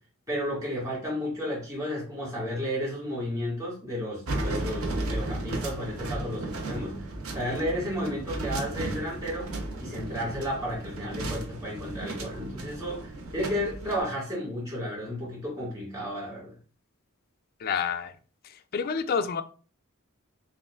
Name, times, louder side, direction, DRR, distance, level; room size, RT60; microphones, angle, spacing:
voice 1, 0.3-7.0 7.3-16.6, equal, 15° right, -5 dB, 1.6 m, -33 dB
sound 1, 4.3-14.0, right 2 dB, 70° right, 0.8 m, -34 dB
voice 2, 17.6-18.1 18.7-19.4, left 6 dB, 45° left, 11 dB, 0.3 m, -28 dB
5.4 x 2.5 x 2.3 m, 0.38 s
head